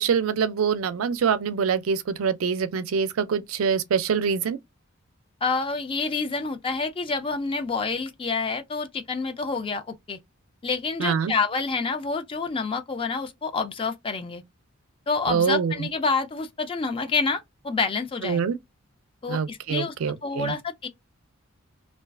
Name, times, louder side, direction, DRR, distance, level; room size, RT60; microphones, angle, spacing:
voice 1, 0.0-4.6 11.0-11.3 15.3-15.9 18.2-18.6 19.3-20.6, right 6 dB, 85° right, 0.4 m, -25 dB
voice 2, 5.4-10.2 10.6-14.4 15.1-18.4 19.2-19.9 20.2-20.9, left 4 dB, 25° left, 0.3 m, -28 dB
2.4 x 2.3 x 2.2 m
head